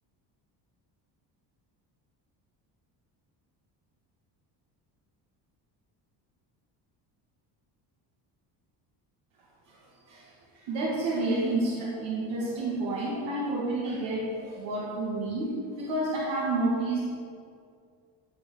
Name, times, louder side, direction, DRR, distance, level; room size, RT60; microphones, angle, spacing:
voice 1, 10.7-15.5 15.8-17.0, right 2 dB, 85° right, -6 dB, 2.5 m, -29 dB
15.0 x 5.5 x 6.6 m, 2.2 s
cardioid pair, 155°, 43 cm